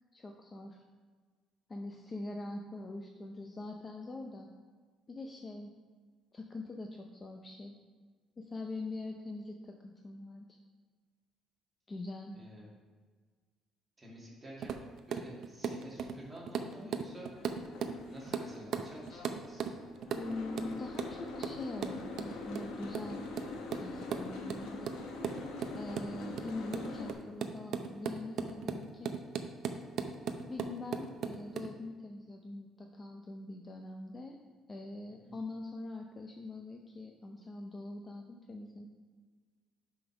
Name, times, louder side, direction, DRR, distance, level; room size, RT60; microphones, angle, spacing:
voice 1, 0.1-0.8 1.7-4.5 5.1-5.7 6.3-7.8 8.4-10.6 11.9-12.4 20.2-23.2 23.8-24.9 25.8-29.2 30.5-34.4 34.7-38.9, left 2 dB, 20° left, 2 dB, 0.5 m, -43 dB
voice 2, 12.3-12.7 14.0-17.3 18.0-19.7 35.2-35.4, equal, 10° right, -5 dB, 2.1 m, -50 dB
sound 1, 14.6-18.0 18.3-18.4 18.7-21.2 21.4-31.7, right 7 dB, 55° right, 0.5 m, -36 dB
Boat Water vehicle, 17.3-27.1, left 3 dB, 85° left, 1.1 m, -44 dB
5.8 x 5.3 x 5.9 m, 1.5 s
cardioid pair, 140°, 0 cm